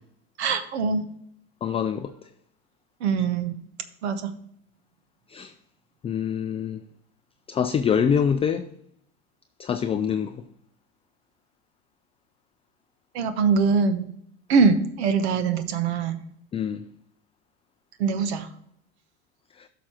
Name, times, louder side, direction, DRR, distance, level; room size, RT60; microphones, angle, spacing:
voice 1, 0.4-1.1 3.0-3.6 4.0-4.3 13.1-14.1 14.5-16.2 18.0-18.5, right 5 dB, 80° right, 1.0 m, -23 dB
voice 2, 1.6-2.1 5.3-5.5 6.0-6.8 7.5-8.7 9.6-10.4 16.5-16.8 19.6-19.7, left 7 dB, 20° left, 0.3 m, -25 dB
11.5 x 6.2 x 2.9 m
supercardioid pair, 100°, 32 cm